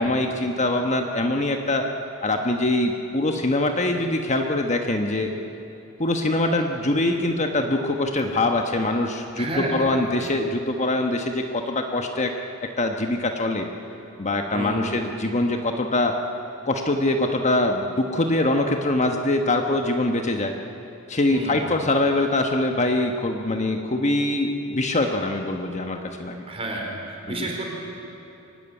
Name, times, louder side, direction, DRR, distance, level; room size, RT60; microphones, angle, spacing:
voice 1, 0.0-1.9 2.2-5.3 6.0-12.3 12.8-13.7 14.2-16.1 16.6-20.5 21.1-26.4 27.3-27.5, left 2 dB, 35° left, 4 dB, 1.2 m, -23 dB
voice 2, 9.4-9.9 14.5-14.9 21.3-21.6 26.5-26.9 27.3-27.7, right 1 dB, 30° right, -1 dB, 4.6 m, -30 dB
24.5 x 17.0 x 9.8 m, 2.9 s
head